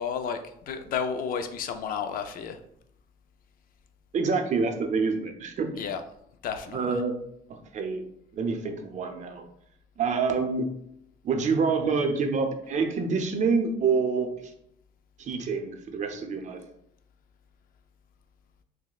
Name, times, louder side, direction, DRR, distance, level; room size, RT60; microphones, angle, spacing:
voice 1, 0.0-2.6 5.8-6.0 6.4-7.0, left 7 dB, 60° left, 8 dB, 0.4 m, -32 dB
voice 2, 4.1-5.8 6.7-7.1 7.7-8.0 8.4-9.4 10.0-10.7 11.2-14.5 15.2-16.6, right 4 dB, 45° right, 6 dB, 0.6 m, -27 dB
5.9 x 2.1 x 2.3 m, 0.73 s
cardioid pair, 110°, 17 cm